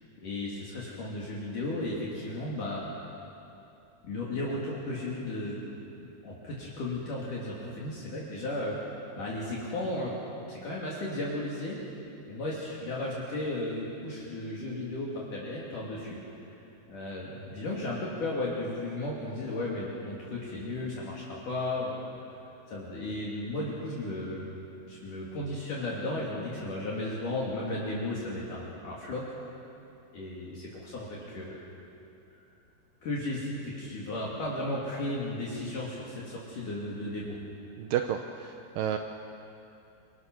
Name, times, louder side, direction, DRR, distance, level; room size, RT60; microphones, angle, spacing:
voice 1, 0.2-2.8 4.0-5.6 6.0-8.9 9.2-10.1 10.5-11.8 12.3-16.2 16.9-22.0 22.7-24.5 24.9-29.2 30.1-31.6 33.0-37.4, left 2 dB, 50° left, -5 dB, 4.0 m, -34 dB
voice 2, 37.8-39.0, right 10 dB, 80° right, 5 dB, 2.0 m, -31 dB
28.5 x 22.5 x 6.3 m, 2.8 s
omnidirectional pair, 5.0 m